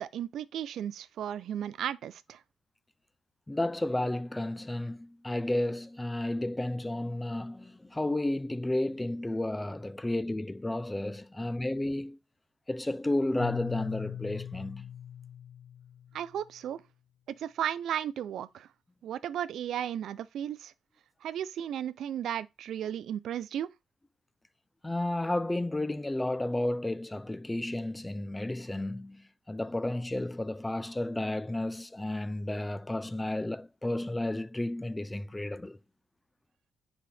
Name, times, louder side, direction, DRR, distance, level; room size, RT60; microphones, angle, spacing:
voice 1, 0.0-2.4 16.1-16.8 17.4-18.7 19.0-20.7 21.2-23.7, right 10 dB, 70° right, 0.5 m, -35 dB
voice 2, 3.5-12.2 12.7-14.9 24.8-35.8, left 1 dB, 10° left, 0.6 m, -32 dB
Keyboard (musical), 13.4-16.3, left 9 dB, 70° left, 0.3 m, -39 dB
9.8 x 4.2 x 3.4 m
cardioid pair, 90°, 0 cm